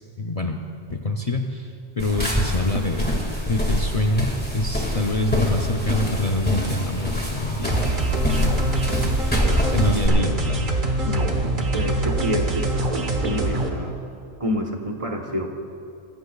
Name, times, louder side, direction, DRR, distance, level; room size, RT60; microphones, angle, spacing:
voice 1, 0.2-0.6 0.9-1.7 2.0-7.9 9.7-10.7 11.2-11.3 11.6-11.7, left 2 dB, 40° left, 3 dB, 0.7 m, -25 dB
sound 1, 2.0-10.1, equal, 10° left, 1.9 m, -25 dB
sound 2, 7.7-13.7, right 2 dB, 45° right, 1.3 m, -24 dB
voice 2, 11.0-11.3 11.7-14.0 14.4-15.5, equal, 30° right, 1 dB, 1.1 m, -28 dB
25.0 x 15.0 x 2.4 m, 2.5 s
omnidirectional pair, 1.1 m